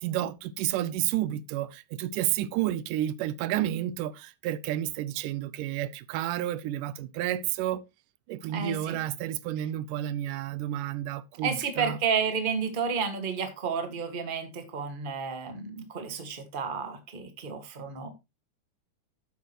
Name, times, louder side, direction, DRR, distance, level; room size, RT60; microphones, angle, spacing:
voice 1, 0.0-7.8 8.3-12.0, right 13 dB, 90° right, 2.3 m, -31 dB
voice 2, 8.5-9.0 11.4-18.1, right 6 dB, 25° right, 1.3 m, -31 dB
12.0 x 8.3 x 3.0 m
omnidirectional pair, 3.6 m